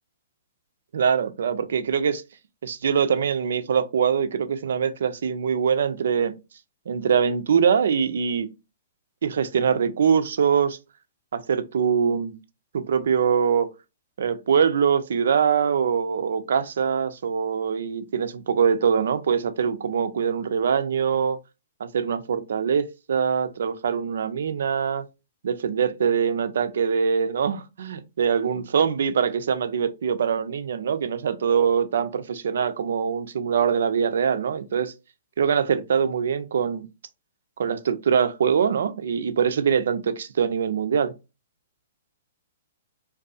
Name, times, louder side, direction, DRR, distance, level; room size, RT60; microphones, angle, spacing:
voice 1, 0.9-2.2 2.6-6.3 6.9-8.5 9.2-10.8 11.3-12.4 12.7-13.7 14.2-21.4 21.8-25.0 25.4-34.9 35.4-36.9 37.6-41.1, right 7 dB, 70° right, 0.3 m, -23 dB
2.5 x 2.3 x 2.3 m
hypercardioid pair, 125°, 0 cm